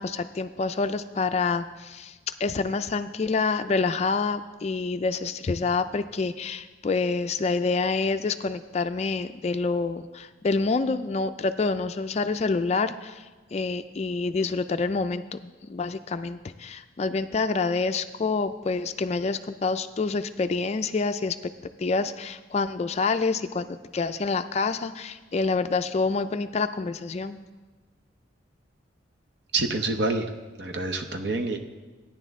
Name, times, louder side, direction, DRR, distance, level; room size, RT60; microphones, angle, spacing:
voice 1, 0.0-2.1 2.4-13.3 13.5-21.4 21.8-27.4, left 4 dB, 35° left, 10 dB, 0.3 m, -27 dB
voice 2, 29.5-30.2 30.6-31.6, right 2 dB, 60° right, 4 dB, 0.9 m, -27 dB
14.5 x 9.9 x 3.6 m, 1.3 s
head